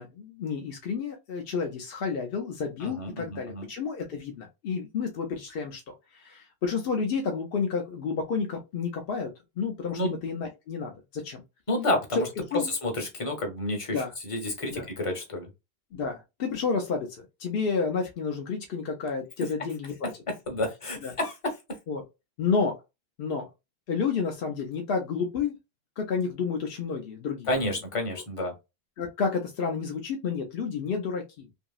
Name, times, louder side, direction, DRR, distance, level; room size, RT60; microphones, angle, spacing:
voice 1, 0.0-9.3 9.6-11.4 12.1-12.2 12.5-12.7 13.9-14.1 14.7-14.9 15.9-20.1 21.0-21.1 21.9-22.0 22.4-22.8 23.2-23.5 23.9-25.5 26.0-27.5 28.1-28.2 29.0-31.5, left 5 dB, 65° left, 3 dB, 0.8 m, -30 dB
voice 2, 2.8-3.7 9.9-10.1 11.7-12.3 12.7-15.5 20.5-21.3 27.5-28.5, left 1 dB, 35° left, 3 dB, 0.9 m, -30 dB
2.8 x 2.7 x 2.3 m, 0.24 s
omnidirectional pair, 1.1 m